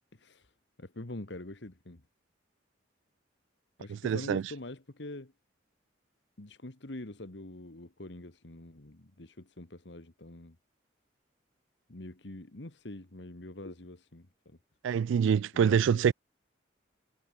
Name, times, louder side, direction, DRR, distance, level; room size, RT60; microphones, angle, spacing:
voice 1, 0.1-0.5 0.8-2.0 3.8-5.3 6.4-10.6 11.9-14.6 15.5-16.1, left 1 dB, 70° left, 1.7 m, -45 dB
voice 2, 4.0-4.4 14.8-16.1, right 7 dB, 80° right, 0.3 m, -25 dB
head